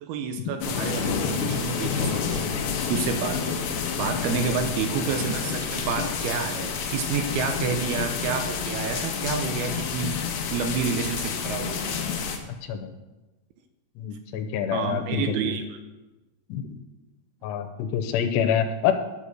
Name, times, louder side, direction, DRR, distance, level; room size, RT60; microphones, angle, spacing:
voice 1, 0.0-2.5 2.9-3.7 4.0-10.2 10.5-11.9 14.7-15.8, right 6 dB, 80° right, 7 dB, 2.5 m, -29 dB
sound 1, 0.6-12.4, left 6 dB, 65° left, 2.2 m, -29 dB
voice 2, 14.0-15.2 16.5-16.7 17.4-18.9, left 9 dB, 85° left, 7 dB, 2.9 m, -26 dB
10.5 x 6.9 x 6.3 m, 1.1 s
omnidirectional pair, 4.8 m